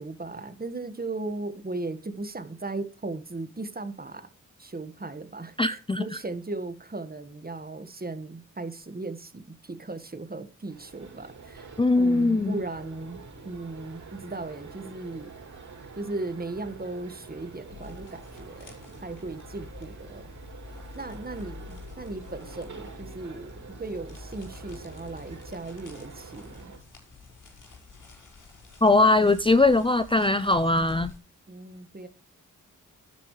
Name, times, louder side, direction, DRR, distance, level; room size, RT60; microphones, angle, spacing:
voice 1, 0.0-4.3 4.6-15.3 16.0-18.7 19.0-20.3 21.0-26.7 31.5-32.1, right 2 dB, 30° right, 1.7 m, -37 dB
voice 2, 5.6-6.0 11.8-12.6 28.8-31.1, left 2 dB, 15° left, 0.5 m, -21 dB
sound 1, 10.7-26.8, right 4 dB, 70° right, 5.8 m, -46 dB
sound 2, 17.7-31.2, left 3 dB, 70° left, 6.1 m, -48 dB
11.0 x 10.5 x 3.3 m
cardioid pair, 65°, 32 cm